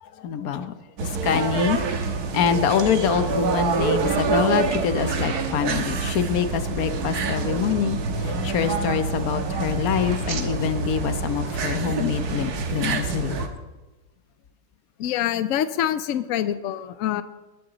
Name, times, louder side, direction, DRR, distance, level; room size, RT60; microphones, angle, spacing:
voice 1, 0.0-1.8 2.3-13.4, left 7 dB, 60° left, 10 dB, 1.1 m, -25 dB
sound 1, 1.0-13.5, right 4 dB, 60° right, 1.6 m, -26 dB
voice 2, 15.0-17.2, left 11 dB, 75° left, 13 dB, 0.7 m, -25 dB
20.5 x 10.5 x 4.0 m, 1.1 s
omnidirectional pair, 2.0 m